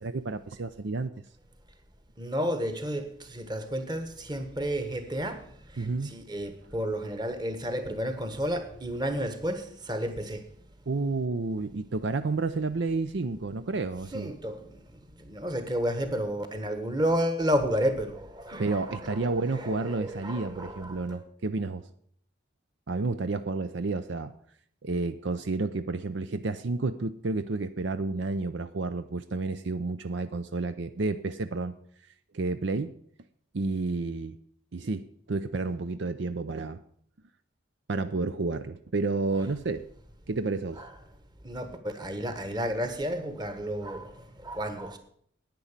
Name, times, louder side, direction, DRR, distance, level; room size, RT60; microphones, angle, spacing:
voice 1, 0.0-1.1 5.8-6.1 10.9-14.3 18.6-21.8 22.9-24.3 24.8-31.7 32.3-32.9 33.5-34.3 34.7-36.8 37.9-39.8 40.3-40.8, right 3 dB, 65° right, 0.6 m, -30 dB
voice 2, 2.2-5.4 6.0-10.4 14.1-14.7 15.2-21.2 40.8-40.9 41.4-45.0, equal, 20° right, 1.4 m, -31 dB
10.5 x 9.4 x 7.3 m
head